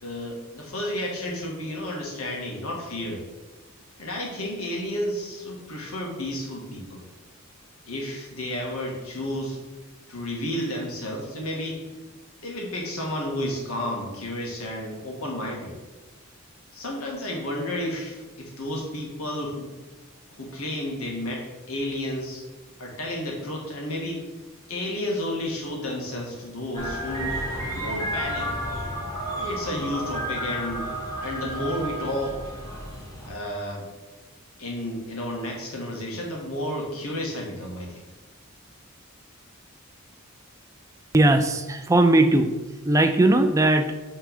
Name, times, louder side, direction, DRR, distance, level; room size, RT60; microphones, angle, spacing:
voice 1, 0.0-3.2 4.0-7.0 7.9-9.6 10.1-11.9 12.4-15.7 16.7-19.7 20.4-22.4 22.8-24.2 24.7-27.4 27.7-28.5 29.4-30.9 31.2-32.4 33.2-33.9 34.6-38.0, left 1 dB, 80° left, -1 dB, 1.6 m, -31 dB
Ice Cream Truck, 26.7-33.3, equal, 15° left, 1.9 m, -31 dB
voice 2, 41.1-42.5 42.9-43.9, right 2 dB, 15° right, 7 dB, 0.4 m, -19 dB
5.9 x 3.6 x 5.5 m, 1.2 s
head